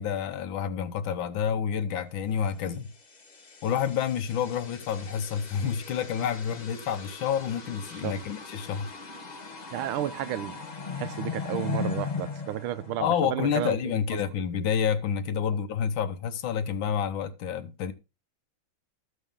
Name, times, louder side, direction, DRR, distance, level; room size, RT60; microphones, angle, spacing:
voice 1, 0.0-2.9 3.6-8.9 13.0-17.9, left 8 dB, 70° left, 1.6 m, -29 dB
sound 1, 2.9-13.6, left 5 dB, 35° left, 0.7 m, -38 dB
voice 2, 7.9-8.2 9.7-10.6 10.9-14.0, right 12 dB, 90° right, 1.6 m, -32 dB
14.0 x 6.5 x 3.6 m
omnidirectional pair, 2.3 m